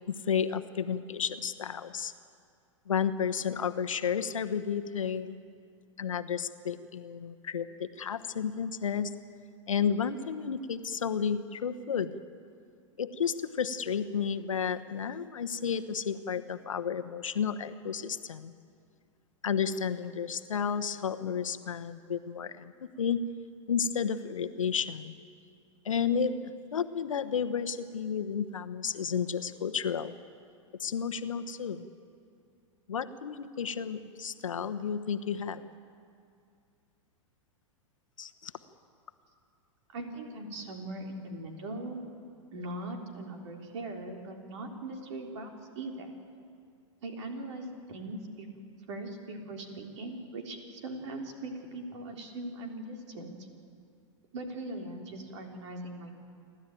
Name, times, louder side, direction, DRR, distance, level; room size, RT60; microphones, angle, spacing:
voice 1, 0.1-2.1 2.9-5.4 6.0-9.2 9.7-12.2 13.0-18.5 19.4-22.7 23.0-23.3 23.7-25.1 25.8-30.1 30.8-31.8 32.9-35.6 38.2-38.5, left 7 dB, 85° left, 10 dB, 1.0 m, -32 dB
voice 2, 39.9-42.0 42.5-46.1 47.0-48.5 48.9-53.3 54.3-56.1, right 2 dB, 65° right, 3 dB, 3.7 m, -40 dB
29.5 x 12.5 x 9.2 m, 2.4 s
hypercardioid pair, 110°, 16 cm